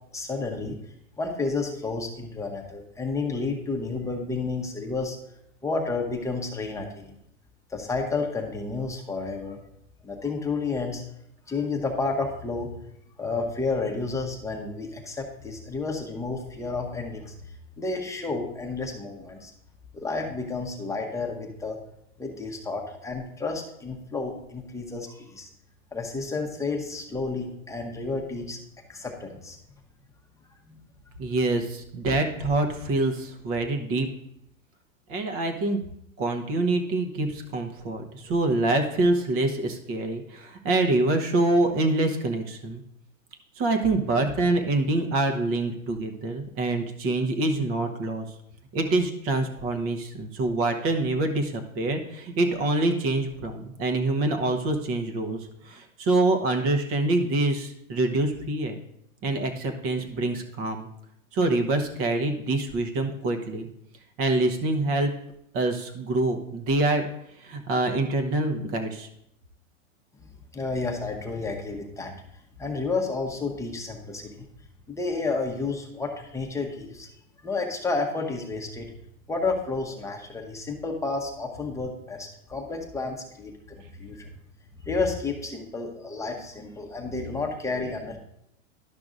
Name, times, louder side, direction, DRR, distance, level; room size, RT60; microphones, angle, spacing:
voice 1, 0.1-0.8 1.2-5.2 5.6-7.2 7.7-9.6 10.0-11.0 11.5-12.7 13.2-17.3 17.8-19.5 19.9-21.8 22.2-25.5 25.9-28.6 28.9-29.6 30.7-30.8 70.5-72.1 72.6-74.4 74.9-77.1 77.4-78.9 79.3-84.3 84.8-88.2, left 3 dB, 5° left, 1 dB, 1.0 m, -31 dB
voice 2, 31.2-34.1 35.1-35.8 36.2-42.8 43.6-48.3 48.7-58.8 59.2-60.9 61.3-63.7 64.2-65.1 65.5-67.1 67.4-69.1, right 2 dB, 35° right, 5 dB, 1.1 m, -25 dB
11.5 x 5.8 x 2.6 m, 0.76 s
hypercardioid pair, 105°, 40 cm